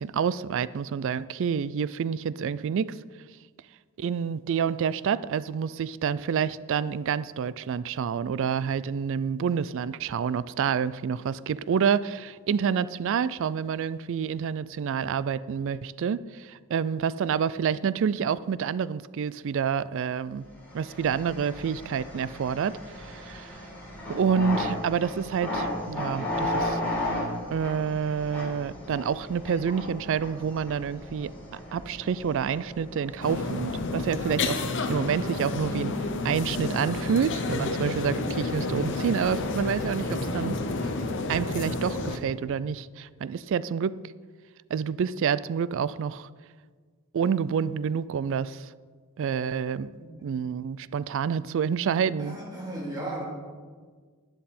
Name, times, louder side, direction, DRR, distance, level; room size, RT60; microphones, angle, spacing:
voice 1, 0.0-3.0 4.0-20.5 20.7-23.6 24.1-26.8 27.5-34.6 34.9-36.0 36.2-40.6 41.3-43.9 44.7-46.3 47.1-48.7 49.2-49.9 50.2-52.4, right 7 dB, 60° right, 18 dB, 0.3 m, -28 dB
sound 1, 20.6-34.4, left 1 dB, 10° left, 3.8 m, -35 dB
sound 2, 33.2-42.2, left 3 dB, 60° left, 0.9 m, -30 dB
voice 2, 52.2-53.2, right 1 dB, 20° right, -6 dB, 3.8 m, -35 dB
11.5 x 10.5 x 4.3 m, 1.6 s
head